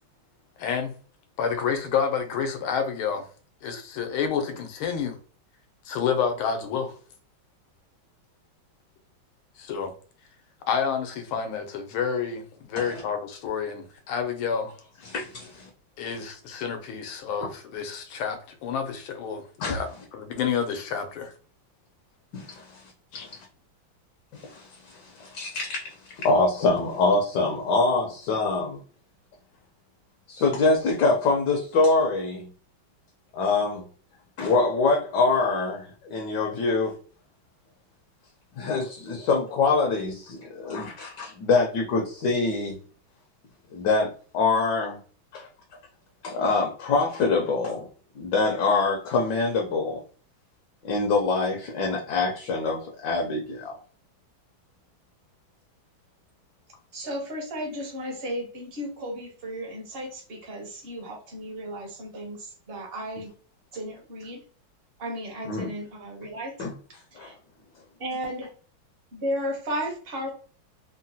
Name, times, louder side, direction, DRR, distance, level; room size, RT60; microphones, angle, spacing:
voice 1, 0.6-0.9 1.4-3.2 3.6-5.1 5.9-7.0 9.6-9.9 10.7-14.7 16.0-19.9 20.1-21.3 23.1-23.3, left 6 dB, 85° left, 1.5 m, -29 dB
voice 2, 15.0-15.7 16.1-16.2 17.4-17.5 19.6-19.8 22.3-22.8 23.1-23.4 24.3-28.8 30.3-32.5 33.3-33.9 34.4-37.0 38.6-42.8 43.7-45.0 45.3-45.5 46.2-47.9 48.2-50.0 50.8-53.8 65.5-65.7 66.6-66.7 67.1-67.3, left 3 dB, 70° left, 1.1 m, -25 dB
voice 3, 56.9-63.3 63.7-64.4 65.0-66.5 67.1-67.3 68.0-68.5 69.1-70.3, equal, 50° right, 0.7 m, -34 dB
3.7 x 2.1 x 2.6 m
omnidirectional pair, 2.2 m